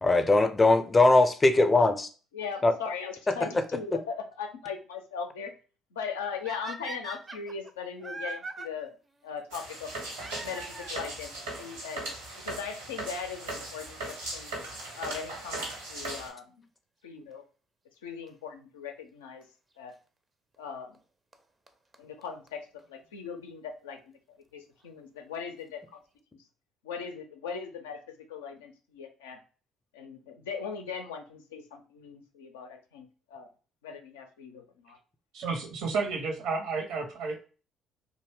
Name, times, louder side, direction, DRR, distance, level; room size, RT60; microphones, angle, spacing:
voice 1, 0.0-2.1 2.6-2.7, left 2 dB, 25° left, 8 dB, 0.5 m, -20 dB
voice 2, 2.3-5.5 5.9-9.0 9.2-9.9 10.4-12.1 12.5-14.5 14.9-16.6 17.0-17.4 18.0-19.4 19.8-19.9 20.6-20.9 22.0-24.0 24.5-26.0 26.8-28.0 28.3-29.4 29.9-33.5 33.8-35.0, left 6 dB, 80° left, 4 dB, 0.4 m, -39 dB
sound 1, 6.4-8.7 10.1-11.2 12.1-12.2 12.9-13.0 13.2-13.3 15.2-15.4 18.3-18.4 19.4-19.5 20.9-21.0 21.3-21.4 21.7-21.8 21.9-22.0 22.2-22.3 22.5-22.6 22.8-22.9, right 3 dB, 30° right, 0.4 m, -41 dB
sound 2, 9.5-16.3, right 2 dB, 85° right, 1.0 m, -38 dB
voice 3, 35.3-37.5, right 4 dB, 65° right, 2 dB, 0.7 m, -32 dB
2.7 x 2.1 x 3.2 m, 0.36 s
hypercardioid pair, 50°, 0 cm